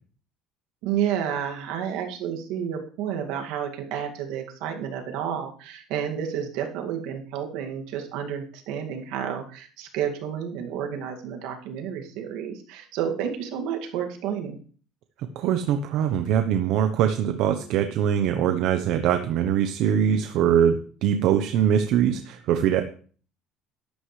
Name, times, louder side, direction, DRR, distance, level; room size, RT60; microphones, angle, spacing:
voice 1, 0.8-14.6, right 8 dB, 80° right, 4 dB, 2.1 m, -30 dB
voice 2, 15.4-22.8, right 9 dB, 65° right, 8 dB, 0.9 m, -22 dB
12.0 x 11.5 x 3.2 m, 0.42 s
cardioid pair, 145°, 0 cm